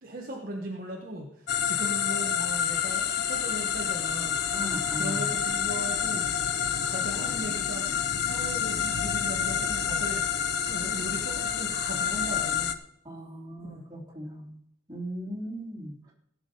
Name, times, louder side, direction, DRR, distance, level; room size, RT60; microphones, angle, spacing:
voice 1, 0.0-4.4 5.0-6.3 6.9-7.9 8.2-12.8 13.6-13.9, right 1 dB, 45° right, 0 dB, 1.3 m, -38 dB
sound 1, 1.5-12.7, left 8 dB, 50° left, 0.7 m, -28 dB
voice 2, 4.5-5.3 13.0-14.6 14.9-16.1, equal, 20° right, -4 dB, 3.2 m, -38 dB
16.5 x 6.2 x 5.4 m, 0.73 s
head